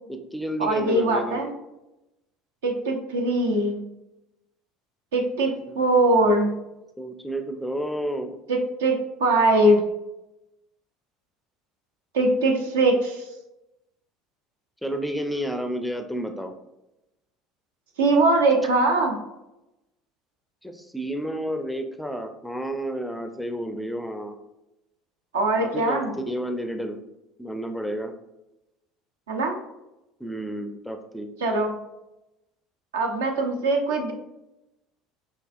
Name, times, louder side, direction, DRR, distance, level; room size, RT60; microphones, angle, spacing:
voice 1, 0.1-1.4 5.8-6.4 7.0-8.4 14.8-16.5 20.6-24.4 25.6-27.0 27.4-28.1 30.2-31.3, right 1 dB, ahead, 6 dB, 0.4 m, -31 dB
voice 2, 0.6-1.5 2.6-3.8 5.1-6.6 8.5-9.8 12.1-13.3 18.0-19.2 25.3-26.1 29.3-29.6 31.4-31.7 32.9-34.1, right 2 dB, 70° right, 3 dB, 0.6 m, -21 dB
5.4 x 2.8 x 2.4 m, 0.94 s
figure-of-eight pair, 65°, 0 cm